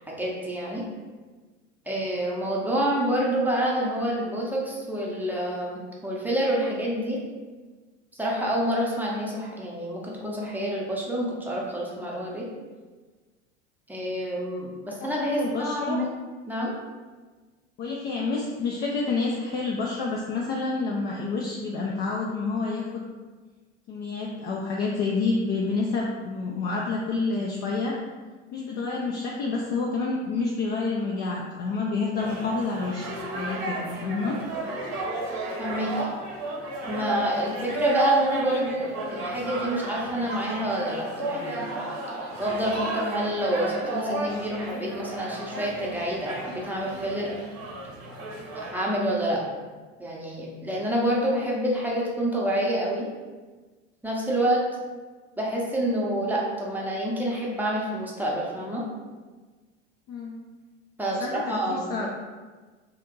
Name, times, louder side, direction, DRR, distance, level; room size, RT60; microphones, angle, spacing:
voice 1, 0.1-0.8 1.9-7.2 8.2-12.5 13.9-16.1 16.5-16.7 35.6-36.1 36.9-41.7 42.4-47.3 48.7-49.4 50.0-53.1 54.0-54.6 55.4-58.8 61.0-62.1, right 1 dB, 5° right, -4 dB, 0.7 m, -27 dB
voice 2, 15.2-16.0 17.8-23.0 23.9-28.0 28.5-33.1 33.3-34.4 60.1-60.3 61.1-61.5 61.9-62.1, left 3 dB, 30° left, -2 dB, 0.4 m, -28 dB
sound 1, 32.2-48.7, right 2 dB, 40° right, 0.8 m, -33 dB
2.8 x 2.5 x 3.7 m, 1.3 s
figure-of-eight pair, 80°, 36 cm